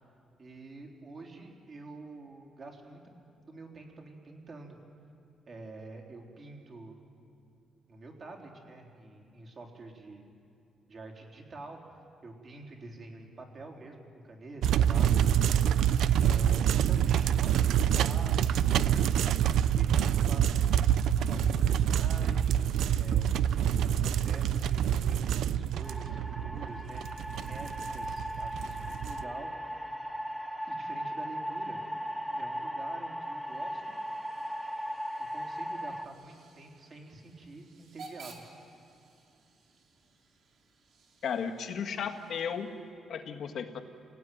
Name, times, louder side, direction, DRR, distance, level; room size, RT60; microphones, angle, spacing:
voice 1, 0.4-3.0 3.4-4.8 5.5-7.0 7.9-10.2 10.9-11.8 12.2-15.3 16.2-20.7 21.3-23.3 23.8-27.0 27.4-29.5 30.7-31.8 32.4-33.9 35.3-38.4, right 3 dB, 35° right, 1 dB, 4.1 m, -47 dB
sound 1, 14.6-29.2, right 9 dB, 85° right, 0.6 m, -26 dB
sound 2, 25.8-36.0, equal, ahead, 1.4 m, -37 dB
Hiss / Train / Alarm, 33.3-42.9, right 4 dB, 60° right, 4.2 m, -56 dB
voice 2, 41.2-42.7 43.1-43.8, left 7 dB, 65° left, 5 dB, 1.9 m, -34 dB
28.5 x 17.5 x 9.5 m, 2.5 s
cardioid pair, 130°, 0 cm